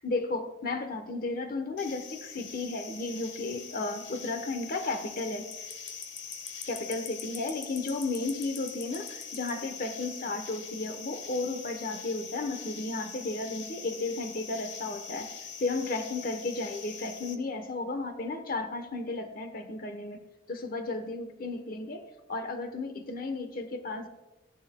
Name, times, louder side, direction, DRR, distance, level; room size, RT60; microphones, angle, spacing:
voice 1, 0.0-5.5 6.7-15.3 15.6-20.2 20.5-22.0 22.3-24.1, left 3 dB, 50° left, 8 dB, 0.9 m, -34 dB
sound 1, 1.8-17.3, left 6 dB, 70° left, 1.1 m, -43 dB
15.5 x 10.5 x 2.2 m, 1.0 s
head